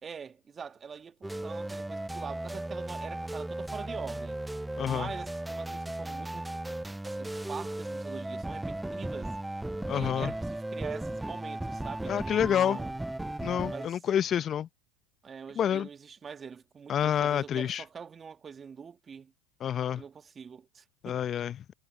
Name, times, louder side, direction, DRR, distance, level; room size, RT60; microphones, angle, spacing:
voice 1, 0.0-4.4 4.8-6.6 7.1-9.4 9.9-12.9 13.7-14.0 15.2-19.3 19.9-21.2, right 6 dB, 25° right, 2.4 m, -44 dB
sound 1, 1.2-13.9, right 1 dB, 5° right, 0.3 m, -36 dB
voice 2, 4.8-5.1 9.9-10.3 12.1-12.8 13.4-14.7 15.6-15.9 16.9-17.8 19.6-20.0 21.0-21.7, left 9 dB, 35° left, 0.8 m, -28 dB
hypercardioid pair, 90°, 0 cm